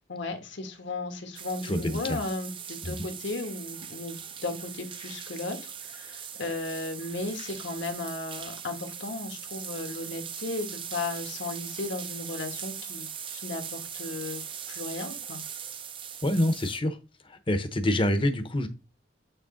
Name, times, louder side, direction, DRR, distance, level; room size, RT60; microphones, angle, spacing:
voice 1, 0.1-14.4 14.7-15.4, left 2 dB, 80° left, 5 dB, 1.5 m, -35 dB
sound 1, 1.4-16.8, right 8 dB, 30° right, 0.5 m, -40 dB
voice 2, 1.6-2.2 2.8-2.9 16.2-17.0 17.3-18.7, left 1 dB, 30° left, 9 dB, 0.8 m, -26 dB
9.0 x 3.2 x 3.8 m, 0.30 s
head